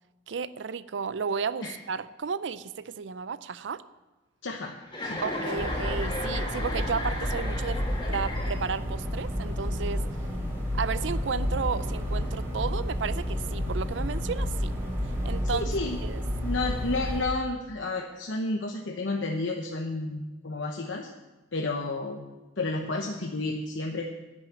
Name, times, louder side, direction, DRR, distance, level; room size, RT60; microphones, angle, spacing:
voice 1, 0.3-3.8 5.2-7.8 8.1-10.0 10.7-14.8 15.2-15.7 16.0-16.2, right 5 dB, 70° right, 15 dB, 0.5 m, -33 dB
voice 2, 4.4-4.7 5.0-5.2 15.5-16.0 16.4-21.1 21.5-22.3 22.6-24.0, left 2 dB, 75° left, 2 dB, 0.9 m, -31 dB
Chuckle chortle, 4.9-8.9, left 1 dB, 25° left, 2.1 m, -35 dB
sound 1, 5.5-17.2, equal, 15° right, 2.9 m, -30 dB
10.5 x 6.3 x 9.0 m, 1.2 s
head